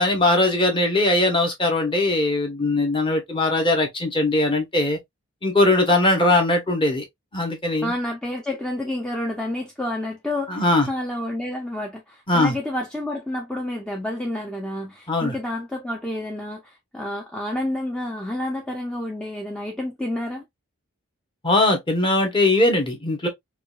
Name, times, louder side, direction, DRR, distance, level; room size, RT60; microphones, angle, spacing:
voice 1, 0.0-5.0 5.4-7.1 7.3-7.9 10.5-10.9 12.3-12.5 15.1-15.4 21.4-23.3, left 2 dB, 20° left, 0.9 m, -20 dB
voice 2, 7.8-20.4, left 1 dB, 5° left, 0.5 m, -29 dB
4.7 x 2.4 x 2.3 m
head